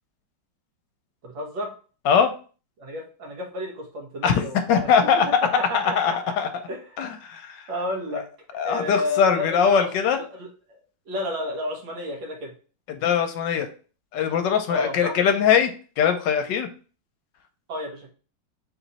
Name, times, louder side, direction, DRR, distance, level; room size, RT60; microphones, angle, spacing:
voice 1, 1.2-1.7 2.8-6.3 6.7-7.0 7.7-8.3 8.6-10.8 11.1-12.5 14.7-15.1 17.7-18.1, left 1 dB, 75° right, 1 dB, 1.8 m, -32 dB
voice 2, 4.2-5.3 5.7-6.5 7.0-7.7 8.1-8.2 8.5-10.2 12.9-13.7 14.1-15.7 16.0-16.7, left 7 dB, 75° left, 7 dB, 1.2 m, -21 dB
3.9 x 3.0 x 4.0 m, 0.38 s
omnidirectional pair, 2.1 m